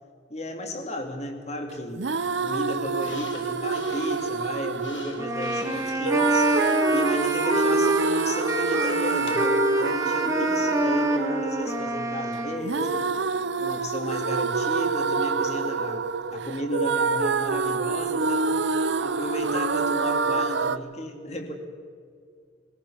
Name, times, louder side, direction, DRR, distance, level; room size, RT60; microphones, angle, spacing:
voice 1, 0.3-2.1 2.4-13.1 13.6-21.5, equal, 35° left, 5 dB, 2.3 m, -34 dB
sound 1, 2.0-20.8, right 4 dB, 70° right, 0.7 m, -27 dB
sound 2, 2.8-9.5, left 4 dB, 80° left, 2.8 m, -47 dB
sound 3, 5.2-12.6, right 1 dB, 15° right, 1.6 m, -26 dB
22.5 x 16.5 x 7.0 m, 2.1 s
head